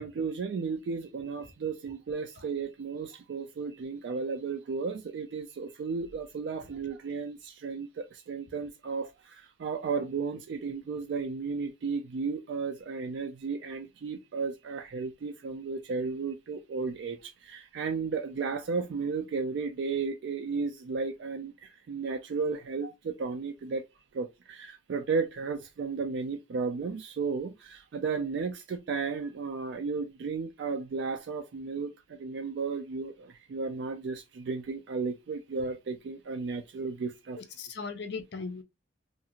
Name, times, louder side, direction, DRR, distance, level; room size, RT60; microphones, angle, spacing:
voice 1, 0.0-23.8 24.1-37.4, right 4 dB, 65° right, 0.3 m, -34 dB
voice 2, 37.4-38.6, left 4 dB, 60° left, 0.5 m, -38 dB
2.5 x 2.4 x 2.9 m
head